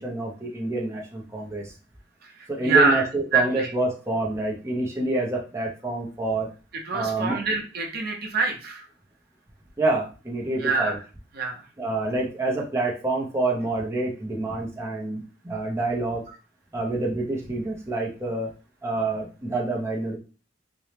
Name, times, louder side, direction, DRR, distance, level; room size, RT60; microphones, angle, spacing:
voice 1, 0.0-1.7 2.5-6.5 6.9-7.4 9.8-11.0 11.8-16.2 16.7-18.5 18.8-20.2, right 2 dB, 15° right, -3 dB, 0.7 m, -27 dB
voice 2, 2.6-3.0 3.3-3.7 6.8-8.8 10.6-10.9 11.4-11.5, right 4 dB, 55° right, 1 dB, 0.7 m, -24 dB
4.1 x 2.3 x 3.3 m, 0.35 s
head